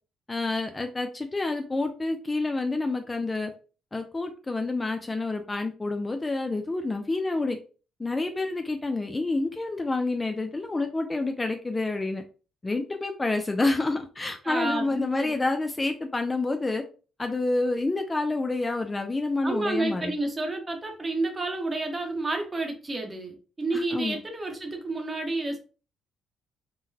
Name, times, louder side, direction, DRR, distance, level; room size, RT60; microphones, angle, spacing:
voice 1, 0.3-3.5 3.9-7.6 8.0-12.2 12.6-16.8 17.2-20.1 23.7-24.2, left 2 dB, 20° left, 5 dB, 0.4 m, -28 dB
voice 2, 14.4-15.3 19.4-25.6, right 2 dB, 25° right, 3 dB, 0.9 m, -30 dB
3.8 x 2.1 x 2.7 m, 0.36 s
cardioid pair, 90°, 0 cm